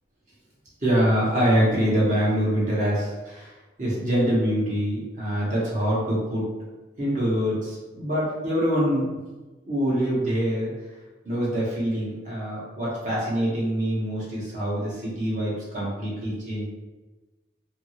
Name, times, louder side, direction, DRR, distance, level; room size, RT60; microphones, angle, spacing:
voice 1, 0.8-3.5 3.8-6.5 7.0-9.1 9.6-10.7 11.2-16.6, equal, 40° right, -6 dB, 1.0 m, -24 dB
2.8 x 2.6 x 2.8 m, 1.2 s
head